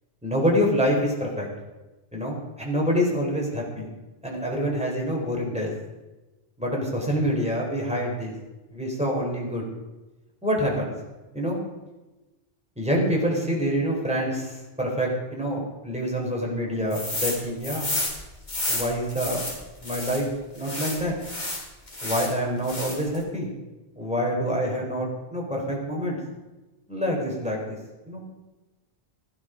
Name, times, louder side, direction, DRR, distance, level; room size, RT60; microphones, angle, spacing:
voice 1, 0.2-1.5 2.1-3.9 4.2-5.7 6.6-8.3 8.7-9.6 10.4-10.9 11.3-11.6 12.8-17.9 18.7-19.5 19.8-20.3 20.5-21.1 22.0-23.5 24.0-26.2 26.9-27.8 28.1-28.2, equal, 5° right, -2 dB, 4.1 m, -26 dB
sound 1, 16.9-17.4 17.6-20.2 20.6-22.3 22.6-23.2, left 1 dB, 45° left, 2.9 m, -30 dB
14.5 x 12.5 x 5.1 m, 1.1 s
omnidirectional pair, 1.1 m